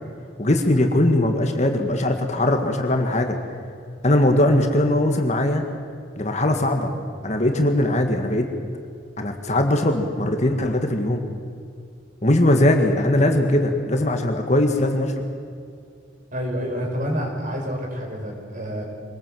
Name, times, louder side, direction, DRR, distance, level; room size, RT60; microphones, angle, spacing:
voice 1, 0.4-3.4 4.0-5.6 6.2-6.9 7.2-8.5 9.2-11.2 12.2-15.3, left 1 dB, 35° left, 4 dB, 1.8 m, -20 dB
voice 2, 16.3-18.8, equal, 45° right, 1 dB, 5.2 m, -28 dB
25.5 x 19.5 x 7.7 m, 2.3 s
head